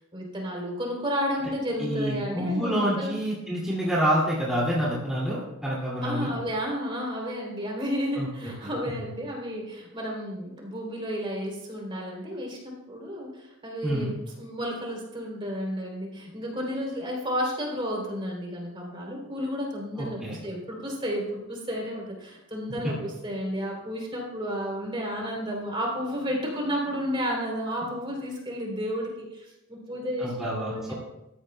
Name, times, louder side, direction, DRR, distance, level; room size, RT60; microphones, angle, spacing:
voice 1, 0.1-3.1 6.0-30.9, equal, 25° right, -1 dB, 3.1 m, -32 dB
voice 2, 1.8-6.3 8.2-8.5 13.8-14.1 20.0-20.4 22.8-22.9 30.2-30.9, equal, 5° right, -7 dB, 2.3 m, -27 dB
15.5 x 13.5 x 2.2 m, 0.94 s
head